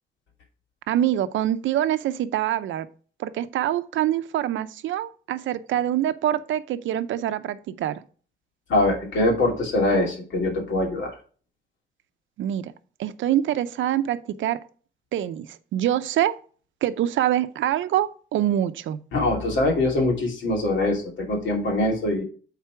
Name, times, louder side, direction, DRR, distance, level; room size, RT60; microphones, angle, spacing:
voice 1, 0.9-2.9 3.2-8.0 12.4-12.7 13.0-14.6 15.1-15.5 15.7-16.4 16.8-19.0, right 12 dB, 75° right, 12 dB, 0.7 m, -25 dB
voice 2, 8.7-11.1 19.1-22.2, left 2 dB, 70° left, 0 dB, 2.8 m, -23 dB
8.3 x 4.1 x 4.7 m, 0.41 s
cardioid pair, 90°, 20 cm